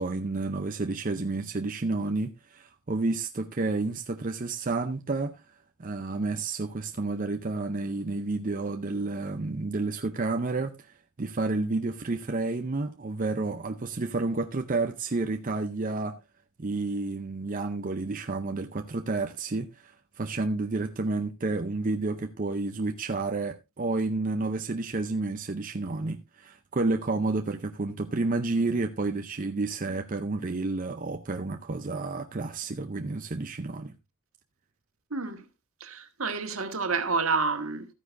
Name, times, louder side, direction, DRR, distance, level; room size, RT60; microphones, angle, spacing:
voice 1, 0.0-5.4 5.8-16.2 16.6-33.9, right 3 dB, 40° right, 0.6 m, -30 dB
voice 2, 35.1-35.4 35.8-37.9, right 4 dB, 70° right, 1.6 m, -29 dB
13.5 x 9.7 x 2.6 m
head